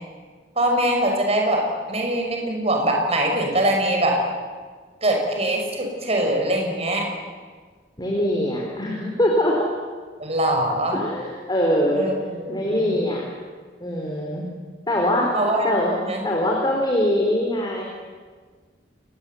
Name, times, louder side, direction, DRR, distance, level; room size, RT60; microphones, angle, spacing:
voice 1, 0.6-4.2 5.0-7.1 10.2-11.0 11.9-13.0 15.3-15.8 16.0-16.2, right 1 dB, 35° right, 2 dB, 6.2 m, -23 dB
voice 2, 8.0-9.6 10.9-12.1 12.5-13.2 13.8-14.5 14.9-15.3 15.6-15.9 16.2-17.8, left 1 dB, 25° left, -1 dB, 4.4 m, -22 dB
29.5 x 21.0 x 9.3 m, 1.5 s
head